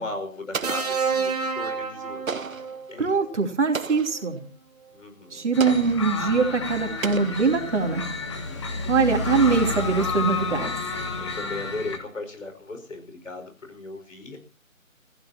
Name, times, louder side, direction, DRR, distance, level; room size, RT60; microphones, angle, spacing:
voice 1, 0.0-2.5 2.9-3.1 4.9-5.5 8.4-8.9 11.2-14.4, left 2 dB, 65° left, 6 dB, 5.4 m, -37 dB
Explosion, 0.5-1.4 2.3-2.8 3.7-4.3 5.6-6.1 7.0-7.9, right 5 dB, 75° right, 1.2 m, -34 dB
sound 1, 0.6-2.9 4.2-4.4, right 5 dB, 30° right, 1.9 m, -28 dB
voice 2, 3.0-4.4 5.3-8.1 8.9-10.7, right 4 dB, 55° right, 4 dB, 3.2 m, -23 dB
sound 2, 5.5-12.0, left 4 dB, 20° left, 1.7 m, -30 dB
29.5 x 15.5 x 2.9 m, 0.37 s
figure-of-eight pair, 165°, 41 cm